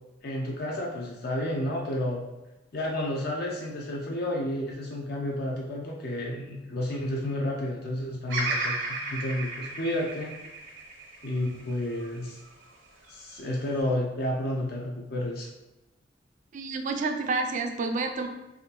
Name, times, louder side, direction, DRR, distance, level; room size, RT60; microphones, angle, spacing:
voice 1, 0.2-2.3 2.7-10.4 11.2-12.4 13.1-15.5, left 1 dB, 55° left, -2 dB, 0.4 m, -31 dB
Bird vocalization bird call bird song, 8.3-12.5 13.1-13.8, right 2 dB, 80° right, 0.7 m, -34 dB
voice 2, 16.5-18.3, right 3 dB, 45° right, 5 dB, 0.3 m, -29 dB
3.5 x 2.4 x 2.8 m, 1.0 s
head